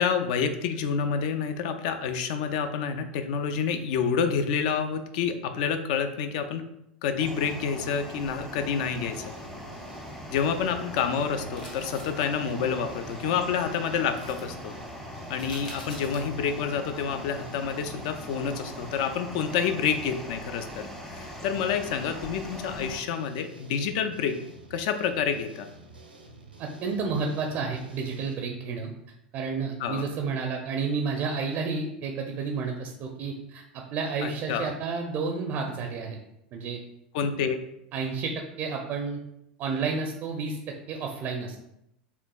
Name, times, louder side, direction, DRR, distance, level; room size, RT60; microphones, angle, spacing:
voice 1, 0.0-6.7 7.0-9.3 10.3-14.7 15.3-20.9 21.1-24.3 24.7-25.7 29.8-30.1 34.2-34.7 37.1-37.6, left 6 dB, 50° left, 8 dB, 0.4 m, -28 dB
sound 1, 7.2-23.0, left 1 dB, 10° left, 0.6 m, -41 dB
sound 2, 9.1-28.3, right 2 dB, 85° right, 0.6 m, -50 dB
sound 3, 11.6-12.2 14.2-14.4 15.4-16.3 16.8-16.9, left 1 dB, 75° left, 0.9 m, -45 dB
voice 2, 26.6-28.9 29.3-33.6 33.9-36.2 36.5-36.8 37.9-39.2 39.6-41.6, right 4 dB, 40° right, 2 dB, 0.5 m, -31 dB
6.8 x 2.3 x 2.3 m, 0.80 s
figure-of-eight pair, 80°, 5 cm